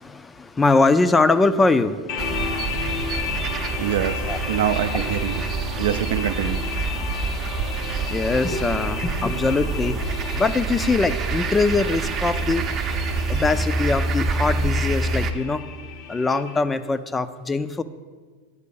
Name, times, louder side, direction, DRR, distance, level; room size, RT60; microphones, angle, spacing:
voice 1, 0.0-2.4 4.3-4.4 4.9-5.0 8.1-10.0 10.3-12.6 13.3-15.6 16.1-17.8, left 3 dB, 15° left, 14 dB, 0.4 m, -22 dB
sound 1, 2.1-16.6, left 7 dB, 45° left, 0.7 m, -34 dB
sound 2, 2.2-15.3, right 4 dB, 35° right, 0.6 m, -27 dB
voice 2, 3.8-4.2 4.5-5.4 5.8-6.6, right 10 dB, 75° right, 11 dB, 0.4 m, -24 dB
8.4 x 4.6 x 6.9 m, 1.5 s
hypercardioid pair, 110°, 0 cm